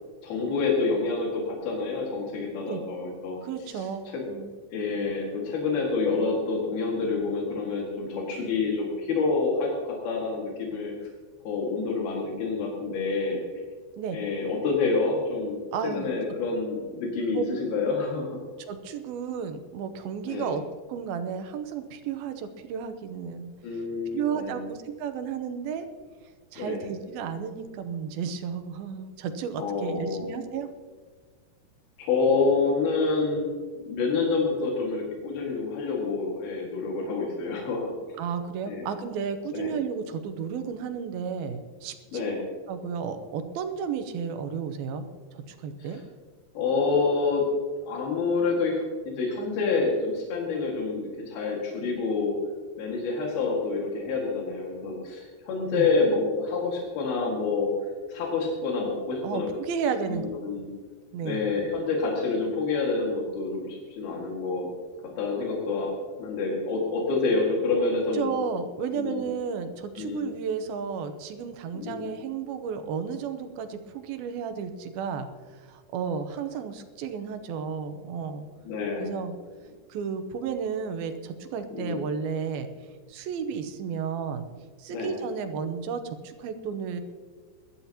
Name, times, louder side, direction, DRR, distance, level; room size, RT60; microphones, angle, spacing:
voice 1, 0.2-3.4 3.7-4.2 4.7-10.9 11.5-13.4 14.1-18.4 20.3-20.6 23.6-24.7 26.6-26.8 29.6-30.3 32.0-33.5 33.8-37.9 38.7-38.9 39.5-39.7 42.1-42.4 45.8-46.0 46.6-47.4 47.9-52.3 52.8-57.7 58.1-59.5 60.1-60.7 61.2-64.7 65.2-65.9 66.2-68.3 68.9-69.3 70.0-70.3 71.7-72.1 78.7-79.2 81.7-82.0 84.9-85.2, left 4 dB, 80° left, -2 dB, 3.9 m, -28 dB
voice 2, 3.4-4.5 14.0-14.2 15.7-16.1 17.3-17.4 18.7-20.6 20.9-23.5 24.1-25.9 26.5-30.7 38.2-42.2 42.7-45.1 45.3-46.0 55.7-55.9 59.2-60.3 61.1-61.4 68.1-78.5 79.0-79.4 79.9-82.7 83.1-84.4 84.8-87.0, right 6 dB, 85° right, 8 dB, 2.8 m, -33 dB
22.0 x 13.0 x 2.9 m, 1.5 s
omnidirectional pair, 4.3 m